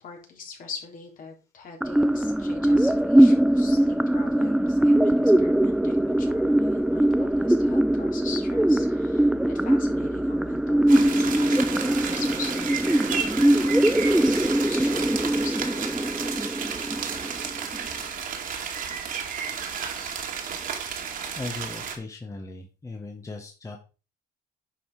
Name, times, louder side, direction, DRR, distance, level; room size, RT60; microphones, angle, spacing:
voice 1, 0.0-16.7, left 5 dB, 55° left, 1 dB, 3.7 m, -42 dB
sound 1, 1.8-17.8, right 1 dB, 5° right, 0.4 m, -22 dB
sound 2, 10.9-22.0, right 7 dB, 55° right, 2.5 m, -32 dB
voice 2, 21.3-23.8, left 3 dB, 20° left, 2 dB, 1.6 m, -37 dB
10.5 x 5.6 x 5.0 m, 0.33 s
cardioid pair, 110°, 17 cm